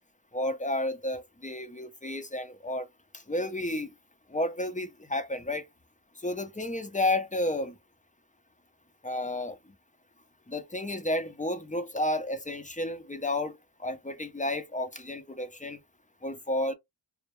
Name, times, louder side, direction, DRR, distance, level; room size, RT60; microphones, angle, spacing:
voice 1, 0.3-2.9 3.1-3.9 4.3-5.7 6.2-7.8 9.0-9.6 10.5-15.8 16.2-16.7, left 1 dB, 15° left, 0.5 m, -31 dB
2.2 x 2.0 x 2.9 m
cardioid pair, 45°, 50 cm